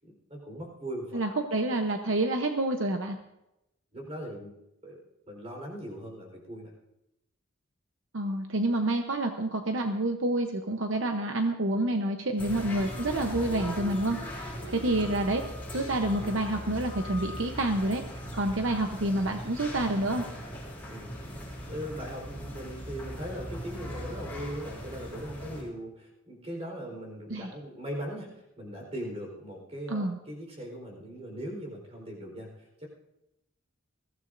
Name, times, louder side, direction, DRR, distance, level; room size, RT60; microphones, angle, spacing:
voice 1, 0.0-1.3 3.9-4.5 4.8-5.0 5.3-6.7 14.6-14.7 20.9-21.2 21.7-32.9, equal, 30° right, 1 dB, 4.2 m, -39 dB
voice 2, 1.1-3.2 8.1-15.4 15.7-18.0 18.3-20.2 27.3-27.5 29.9-30.2, right 1 dB, 70° right, 4 dB, 0.9 m, -28 dB
sound 1, 12.4-25.6, equal, 10° left, 5.4 m, -39 dB
21.0 x 15.5 x 2.6 m, 0.89 s
head